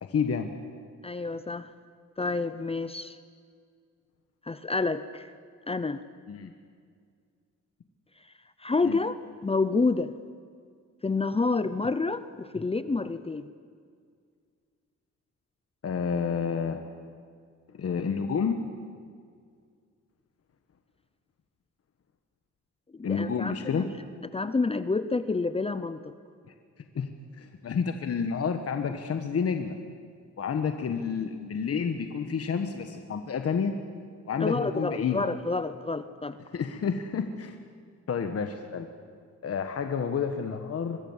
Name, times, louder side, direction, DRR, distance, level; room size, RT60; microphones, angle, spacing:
voice 1, 0.0-0.5 6.3-6.5 8.8-9.0 15.8-16.8 17.7-18.6 23.0-23.9 26.9-27.1 27.4-29.8 30.4-33.7 34.2-35.2 36.5-37.6 38.1-38.9 39.4-41.0, left 6 dB, 55° left, 6 dB, 1.4 m, -29 dB
voice 2, 1.0-1.7 2.2-3.2 4.5-5.3 5.7-6.0 8.6-9.1 9.4-10.1 11.0-13.5 22.9-23.9 24.3-26.1 34.4-36.4, left 3 dB, 20° left, 12 dB, 0.7 m, -28 dB
24.0 x 22.5 x 7.3 m, 2.1 s
cardioid pair, 115°, 30 cm